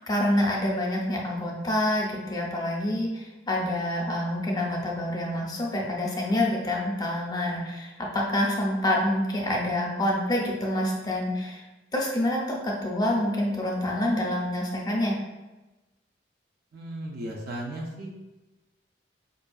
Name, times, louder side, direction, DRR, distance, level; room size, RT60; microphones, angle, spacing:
voice 1, 0.1-11.6 11.9-15.2, left 1 dB, 20° left, -2 dB, 0.5 m, -27 dB
voice 2, 16.7-18.1, right 1 dB, 55° right, -2 dB, 0.5 m, -35 dB
4.8 x 2.5 x 2.3 m, 1.1 s
head